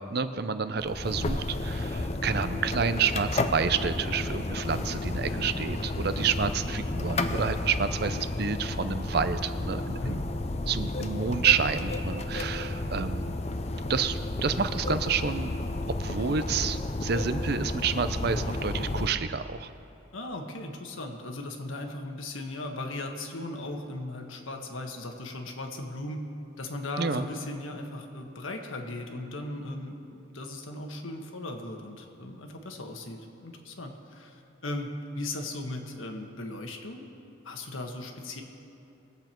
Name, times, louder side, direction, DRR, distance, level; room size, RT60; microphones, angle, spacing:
voice 1, 0.1-10.2 10.7-13.4 13.8-15.6 16.0-19.7 27.0-27.3, right 6 dB, 50° right, 12 dB, 0.6 m, -29 dB
sound 1, 0.8-19.1, left 2 dB, 35° left, 0.6 m, -32 dB
voice 2, 9.9-10.2 20.1-26.2 26.6-29.9 30.3-37.0 37.4-38.4, left 2 dB, 90° left, 3 dB, 1.5 m, -37 dB
22.0 x 8.1 x 4.5 m, 2.7 s
head